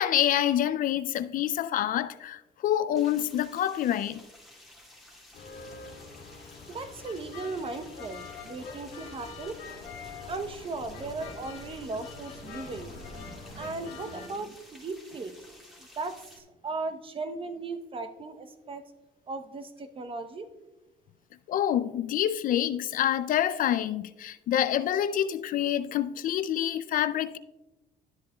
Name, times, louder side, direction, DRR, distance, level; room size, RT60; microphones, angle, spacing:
voice 1, 0.0-4.2 21.5-27.4, left 11 dB, 55° left, 0.4 m, -27 dB
sound 1, 2.9-16.4, left 1 dB, ahead, 2.2 m, -53 dB
sound 2, 5.3-14.3, left 5 dB, 70° left, 1.8 m, -44 dB
voice 2, 6.7-9.6 10.3-15.4 15.8-18.8 19.3-20.5, right 3 dB, 30° right, 0.8 m, -37 dB
12.0 x 7.6 x 2.3 m
cardioid pair, 110°, 17 cm